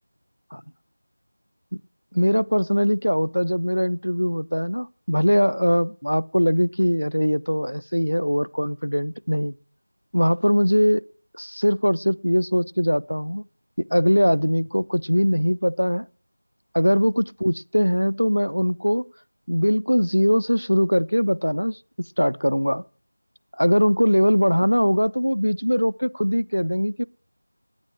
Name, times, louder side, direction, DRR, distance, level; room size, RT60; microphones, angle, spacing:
voice 1, 2.1-9.5 10.1-11.0 11.4-13.5 13.8-16.1 16.7-19.0 19.5-22.8 23.6-27.1, equal, 90° left, 0.6 m, -21 dB
10.0 x 9.8 x 7.5 m
figure-of-eight pair, 175°, 0 cm